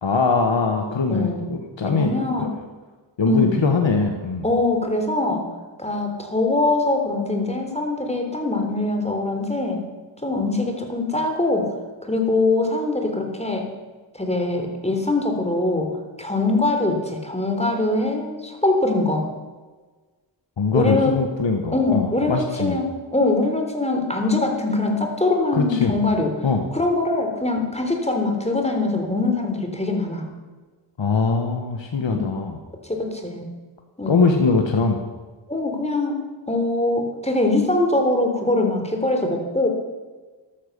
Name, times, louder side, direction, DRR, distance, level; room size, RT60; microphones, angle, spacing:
voice 1, 0.0-2.1 2.4-2.5 3.2-4.5 20.6-22.8 25.5-25.9 26.4-26.7 31.0-32.5 34.1-35.0, left 4 dB, 80° left, 3 dB, 1.5 m, -21 dB
voice 2, 1.1-1.5 1.9-2.5 3.3-3.6 4.4-5.5 5.8-9.9 10.2-11.7 12.0-13.7 14.1-19.3 20.7-21.2 21.7-26.3 26.7-30.3 32.1-32.2 32.9-33.4 34.0-34.5 35.5-36.1 36.5-39.7, left 2 dB, 15° left, 3 dB, 3.7 m, -22 dB
14.0 x 12.5 x 6.8 m, 1.3 s
wide cardioid pair, 55°, 44 cm